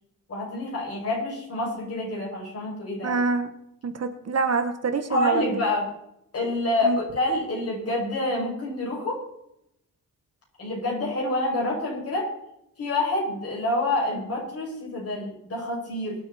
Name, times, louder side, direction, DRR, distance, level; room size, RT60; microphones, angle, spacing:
voice 1, 0.3-3.2 5.1-5.9 6.3-9.2 10.6-12.3 12.8-16.2, left 2 dB, 45° left, -2 dB, 6.8 m, -27 dB
voice 2, 3.0-3.5 3.8-5.5 6.8-7.0, right 4 dB, 45° right, 8 dB, 1.5 m, -25 dB
24.0 x 8.0 x 4.4 m, 0.80 s
wide cardioid pair, 130°, 34 cm